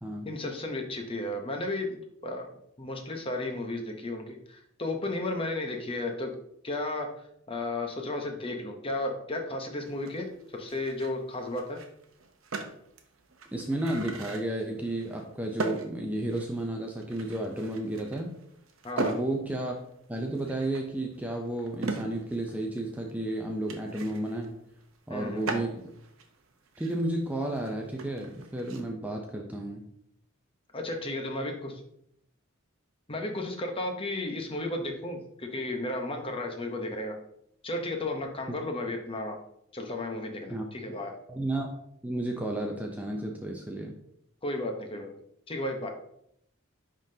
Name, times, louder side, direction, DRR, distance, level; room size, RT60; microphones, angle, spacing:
voice 1, 0.3-2.5 2.8-6.3 6.6-7.1 7.5-11.8 18.8-19.1 25.1-25.5 30.7-31.8 33.1-37.1 37.6-39.4 39.7-41.1 44.4-45.1 45.5-45.9, left 2 dB, 25° left, 3 dB, 0.9 m, -33 dB
sound 1, 9.8-28.9, right 3 dB, 65° right, 0.8 m, -40 dB
voice 2, 13.5-18.3 19.0-19.7 20.1-24.5 25.1-25.9 26.8-29.8 40.5-40.6 41.3-41.7 42.0-43.9, right 1 dB, 5° right, 1 dB, 0.5 m, -32 dB
10.0 x 3.8 x 2.8 m, 0.73 s
head